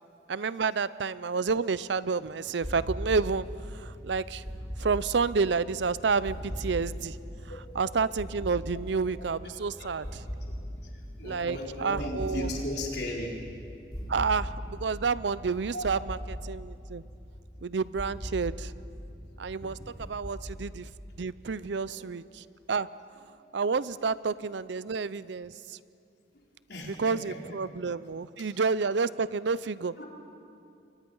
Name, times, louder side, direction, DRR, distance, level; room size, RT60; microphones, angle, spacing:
voice 1, 0.3-4.5 4.8-7.2 7.8-10.2 11.2-12.5 14.1-16.2 16.4-17.0 17.6-18.7 19.4-19.8 20.1-20.9 21.2-22.9 23.5-25.8 27.0-29.9, right 5 dB, 70° right, 17 dB, 0.5 m, -30 dB
sound 1, 2.6-21.5, equal, 20° left, 3.4 m, -40 dB
voice 2, 9.4-13.4 15.7-16.0 19.6-19.9 21.9-22.0 23.9-24.0 26.3-27.6 28.4-28.5 30.0-30.1, left 1 dB, 60° left, -1 dB, 4.1 m, -38 dB
28.5 x 23.5 x 5.5 m, 2.5 s
head